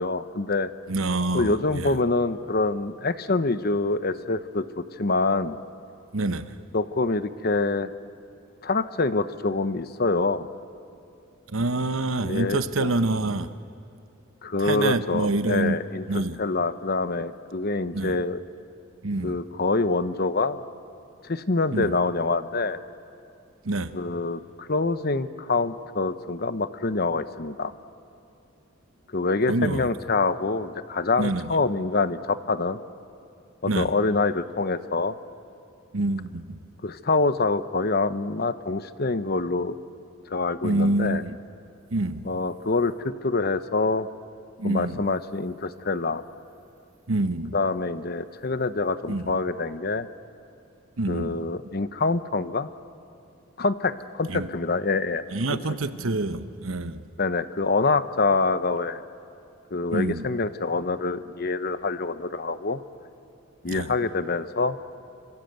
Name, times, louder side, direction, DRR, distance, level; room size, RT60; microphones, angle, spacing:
voice 1, 0.0-0.7 1.3-5.6 6.7-7.9 8.6-10.5 12.2-12.9 14.4-18.4 19.2-20.6 21.2-22.8 23.9-27.7 29.1-32.8 33.6-35.1 36.8-39.8 40.3-41.2 42.2-44.1 44.6-46.2 47.5-50.1 51.1-52.7 53.6-55.2 55.5-55.6 57.2-59.0 59.7-62.8 63.6-64.8, left 3 dB, 50° left, 0.9 m, -26 dB
voice 2, 0.9-2.0 6.1-6.6 11.5-13.5 14.6-15.8 16.1-16.4 17.9-18.2 19.0-19.4 21.7-22.0 23.6-23.9 29.5-29.9 31.2-31.5 33.7-33.9 35.9-36.6 40.6-41.4 41.9-42.2 44.6-45.0 47.1-47.5 49.1-49.3 51.0-51.4 54.3-54.5 55.3-57.0 59.9-60.3 63.7-63.9, right 2 dB, 80° right, 1.1 m, -26 dB
26.0 x 26.0 x 8.1 m
head